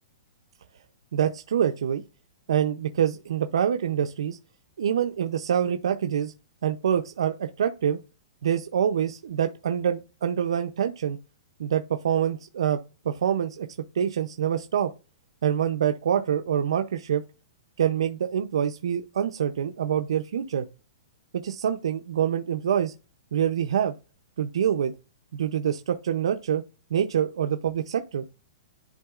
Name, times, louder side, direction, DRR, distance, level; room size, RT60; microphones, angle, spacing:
voice 1, 1.1-2.0 2.5-4.4 4.8-6.3 6.6-8.0 8.4-11.2 11.6-12.8 13.0-13.7 13.9-14.9 15.4-17.2 17.8-20.6 21.3-22.9 23.3-23.9 24.4-24.9 25.3-26.6 26.9-28.2, right 9 dB, 85° right, 0.5 m, -25 dB
11.0 x 3.8 x 2.4 m
hypercardioid pair, 160°, 3 cm